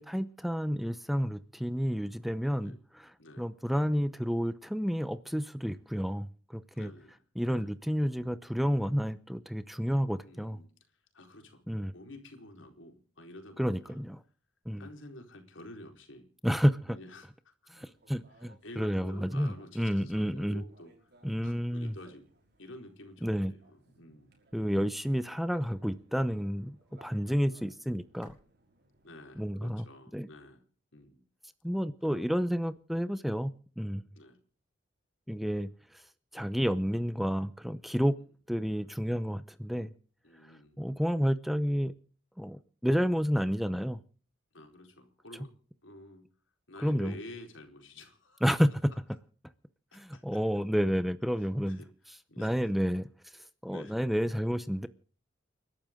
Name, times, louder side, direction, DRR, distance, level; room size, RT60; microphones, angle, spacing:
voice 1, 0.0-3.1 3.4-6.9 7.4-10.6 11.7-11.9 13.6-14.2 14.7-14.9 16.4-17.0 17.7-20.6 21.2-21.9 23.2-23.5 24.5-26.8 27.0-28.4 29.4-29.8 30.1-30.3 31.6-34.0 35.3-36.0 36.3-38.2 38.5-39.9 40.4-41.9 42.4-44.0 46.8-47.1 48.4-48.7 49.9-51.8 52.4-54.9, equal, ahead, 0.7 m, -30 dB
voice 2, 6.7-7.7 10.2-11.6 11.9-14.0 14.8-16.3 16.9-17.5 17.8-17.9 18.3-21.1 21.4-22.3 22.6-24.4 29.0-30.6 30.9-31.2 32.0-32.3 34.1-34.4 38.0-38.1 40.2-40.9 44.5-45.5 45.8-46.3 46.7-48.4 49.9-50.2 51.4-51.9 52.3-52.7 53.7-54.0, left 1 dB, 75° left, 4.3 m, -50 dB
sound 1, 17.8-29.1, right 2 dB, 60° right, 5.7 m, -64 dB
29.5 x 12.0 x 3.8 m
head